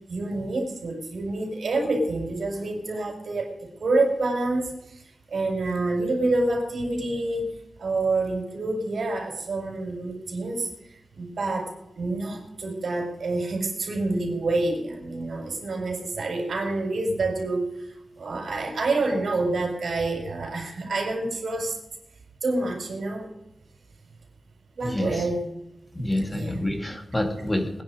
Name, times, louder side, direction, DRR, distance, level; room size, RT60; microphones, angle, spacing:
voice 1, 0.1-5.0 5.3-7.5 7.8-10.7 11.1-17.9 18.2-21.8 22.4-23.3 24.7-25.4 26.2-26.6 27.4-27.5, right 2 dB, 80° right, 2 dB, 5.3 m, -27 dB
voice 2, 24.8-25.3 25.9-27.8, left 1 dB, 15° left, 4 dB, 2.3 m, -28 dB
22.0 x 10.5 x 5.1 m, 0.86 s
wide cardioid pair, 135°, 0 cm